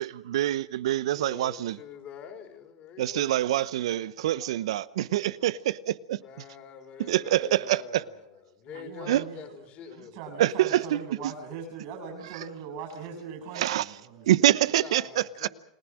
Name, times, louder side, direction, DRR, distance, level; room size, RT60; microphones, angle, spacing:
voice 1, 0.0-1.8 3.0-6.2 7.1-8.0 9.1-9.2 10.4-11.0 13.5-13.8 14.3-15.5, right 13 dB, 70° right, 0.8 m, -25 dB
voice 2, 1.1-3.6 6.2-10.2 14.8-15.5, left 8 dB, 40° left, 3.9 m, -45 dB
voice 3, 8.7-9.6 9.9-14.3, right 5 dB, 55° right, 7.8 m, -40 dB
29.5 x 18.5 x 6.3 m
hypercardioid pair, 95°, 3 cm